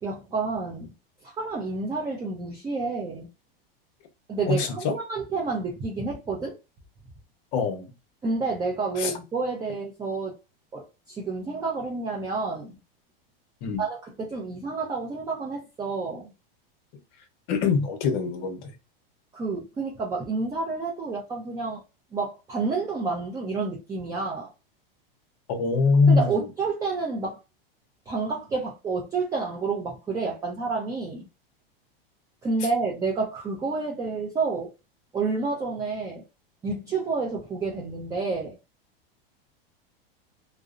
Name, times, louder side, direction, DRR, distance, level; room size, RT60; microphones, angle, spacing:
voice 1, 0.0-0.9 1.2-3.3 4.3-6.6 8.2-10.3 10.7-12.8 13.8-16.3 19.3-21.8 22.1-24.5 26.1-27.4 28.1-31.2 32.4-34.7 35.1-36.2 36.6-38.5, right 4 dB, 10° right, 0.4 m, -29 dB
voice 2, 4.5-4.9 7.5-7.9 9.0-9.1 13.6-13.8 17.5-18.8 25.5-26.4, left 4 dB, 45° left, 0.8 m, -23 dB
2.6 x 2.0 x 2.4 m
supercardioid pair, 140°, 30 cm